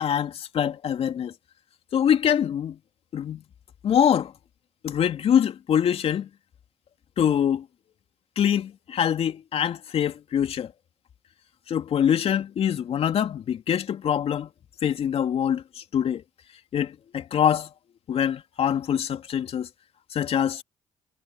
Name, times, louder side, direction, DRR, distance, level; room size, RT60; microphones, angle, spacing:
voice 1, 0.0-1.3 1.9-2.8 3.1-3.4 3.8-4.3 4.8-6.3 7.2-7.6 8.4-10.7 11.7-14.5 14.8-16.2 16.7-17.7 18.1-19.7 20.1-20.6, left 9 dB, 55° left, 2.8 m, -24 dB
hypercardioid pair, 55°, 12 cm